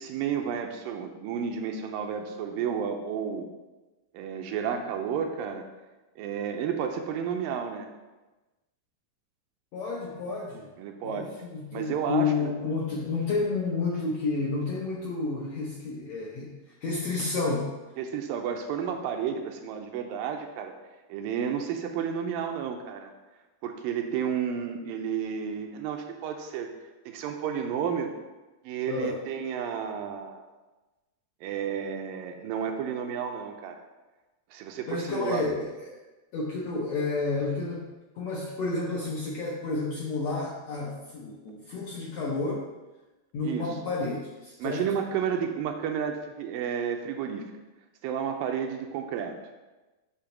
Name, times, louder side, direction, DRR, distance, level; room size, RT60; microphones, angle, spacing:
voice 1, 0.0-3.5 4.1-5.7 6.2-7.9 10.8-11.3 11.7-12.5 18.0-20.7 21.1-23.1 23.6-26.7 27.1-28.1 28.6-30.4 31.4-33.8 34.5-35.4 43.4-43.7 44.6-47.4 48.0-49.4, right 7 dB, 85° right, 4 dB, 2.2 m, -31 dB
voice 2, 9.7-10.7 11.0-17.7 28.9-29.2 34.9-35.9 36.3-37.8 38.2-42.6 43.3-44.9, left 3 dB, 75° left, -4 dB, 1.6 m, -30 dB
8.4 x 2.9 x 5.9 m, 1.1 s
omnidirectional pair, 4.0 m